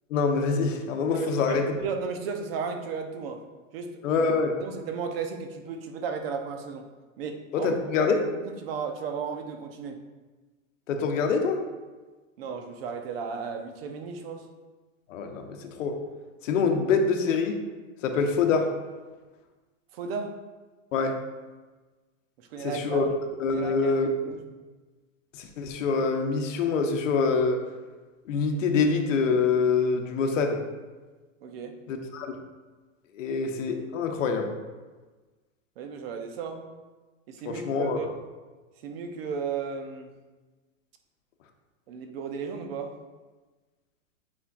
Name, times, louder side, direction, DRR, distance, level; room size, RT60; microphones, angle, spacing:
voice 1, 0.1-1.6 4.0-4.6 7.5-8.2 10.9-11.6 15.1-16.0 16.4-17.6 18.0-18.7 20.9-21.2 22.6-23.1 23.4-24.1 25.4-27.6 28.3-30.6 31.9-32.3 33.1-34.5 37.4-38.0, left 4 dB, 70° left, 4 dB, 1.0 m, -25 dB
voice 2, 1.1-3.4 3.7-4.0 4.6-6.8 7.2-7.7 8.0-8.1 8.6-10.0 12.4-14.4 19.9-20.3 22.4-23.0 23.5-23.9 24.3-24.6 31.4-31.7 35.8-36.6 37.3-38.1 38.8-40.1 41.9-42.9, right 5 dB, 45° right, 5 dB, 0.7 m, -34 dB
8.5 x 4.9 x 2.5 m, 1.3 s
supercardioid pair, 165°, 40 cm